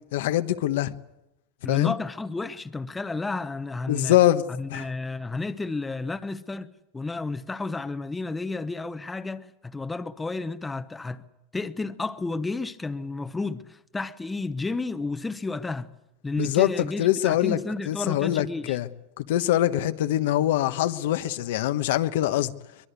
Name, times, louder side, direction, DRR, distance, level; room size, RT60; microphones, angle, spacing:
voice 1, 0.1-0.9 1.7-1.9 3.9-4.4 4.7-4.9 16.4-16.7 17.0-17.6 17.9-18.9 19.2-22.5, left 14 dB, 75° left, 1.2 m, -23 dB
voice 2, 1.6-4.2 4.5-11.2 11.5-15.9 16.2-18.8, left 3 dB, 10° left, 0.9 m, -32 dB
23.0 x 22.0 x 8.2 m
supercardioid pair, 140°, 0 cm